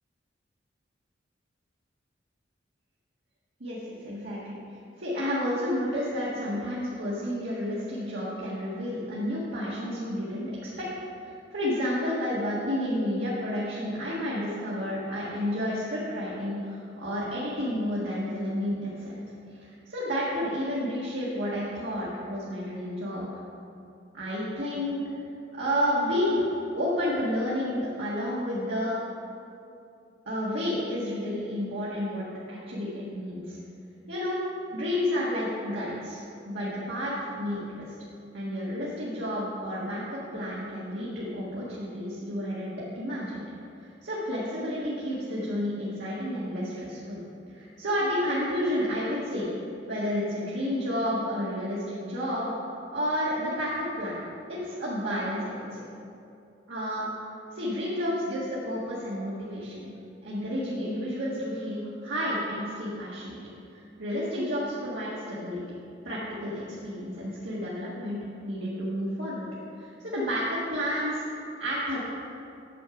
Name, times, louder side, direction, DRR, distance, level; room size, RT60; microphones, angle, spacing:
voice 1, 3.6-4.6 5.0-10.8 11.2-19.2 19.6-23.2 24.1-25.0 25.5-29.0 30.3-33.6 34.1-34.4 34.7-37.9 38.3-43.4 43.8-47.2 47.5-49.5 49.9-52.5 52.9-54.2 54.5-55.8 56.7-57.0 57.5-59.9 60.2-63.4 64.0-65.6 66.0-68.2 68.4-69.5 69.8-71.2 71.6-72.0, equal, 70° right, -8 dB, 1.8 m, -31 dB
9.2 x 7.4 x 5.1 m, 2.6 s
head